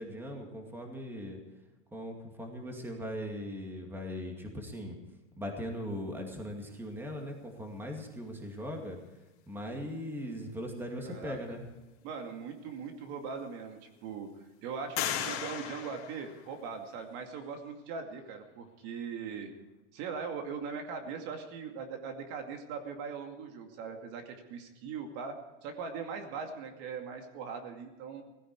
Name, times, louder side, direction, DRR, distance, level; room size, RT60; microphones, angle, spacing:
voice 1, 0.0-1.4 1.9-5.0 5.4-9.0 9.5-11.6, equal, 5° right, 2 dB, 2.3 m, -39 dB
voice 2, 11.0-11.6 12.0-14.3 14.6-19.5 19.9-28.2, right 5 dB, 50° right, 4 dB, 2.4 m, -40 dB
sound 1, 12.7-12.8 13.4-14.0 15.0-16.9, left 10 dB, 70° left, 3.4 m, -37 dB
18.0 x 15.0 x 4.8 m, 1.1 s
supercardioid pair, 145°, 36 cm